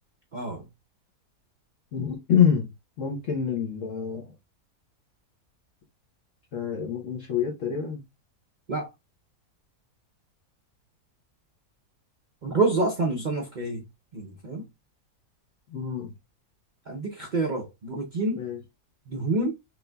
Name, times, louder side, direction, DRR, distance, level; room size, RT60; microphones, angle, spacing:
voice 1, 0.3-0.7 8.7-8.9 12.4-13.8 14.1-14.7 16.9-18.4 19.1-19.5, right 3 dB, 60° right, 0.5 m, -27 dB
voice 2, 1.9-2.7 3.0-4.3 6.5-8.0 15.7-16.1 18.3-18.6, left 8 dB, 55° left, 1.1 m, -26 dB
5.8 x 2.7 x 2.2 m
omnidirectional pair, 1.7 m